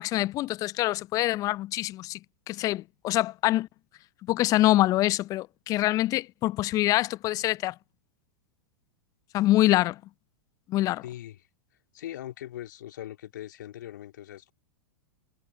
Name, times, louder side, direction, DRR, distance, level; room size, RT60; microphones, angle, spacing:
voice 1, 0.0-2.2 2.5-3.7 4.3-7.7 9.3-10.0 10.7-11.0, left 16 dB, 30° left, 0.5 m, -25 dB
voice 2, 11.0-11.5 11.9-14.5, left 12 dB, 60° left, 2.8 m, -40 dB
figure-of-eight pair, 100°, 11 cm